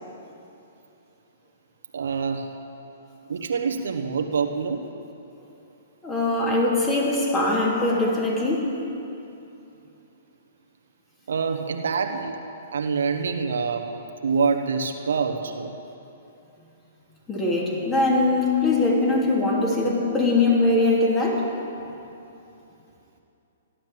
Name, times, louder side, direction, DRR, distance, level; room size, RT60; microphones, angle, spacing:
voice 1, 1.9-2.5 3.3-4.8 11.3-12.4 12.7-13.9 14.2-15.7, right 5 dB, 80° right, 4 dB, 1.3 m, -26 dB
voice 2, 6.0-8.7 17.3-21.5, left 2 dB, 20° left, -3 dB, 3.1 m, -22 dB
15.5 x 11.5 x 7.6 m, 2.9 s
hypercardioid pair, 135°, 0 cm